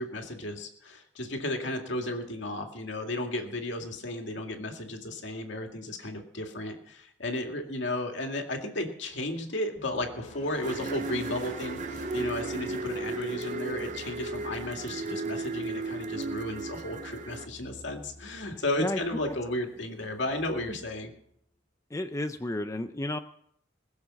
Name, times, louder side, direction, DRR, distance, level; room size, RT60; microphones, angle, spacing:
voice 1, 0.0-21.1, left 1 dB, 70° left, 3 dB, 2.2 m, -34 dB
sound 1, 9.8-21.3, left 2 dB, 35° left, 2.9 m, -47 dB
sound 2, 10.6-17.4, right 4 dB, 40° right, 0.6 m, -35 dB
voice 2, 21.9-23.2, left 1 dB, 15° left, 7 dB, 0.5 m, -31 dB
21.0 x 7.2 x 6.4 m, 0.69 s
head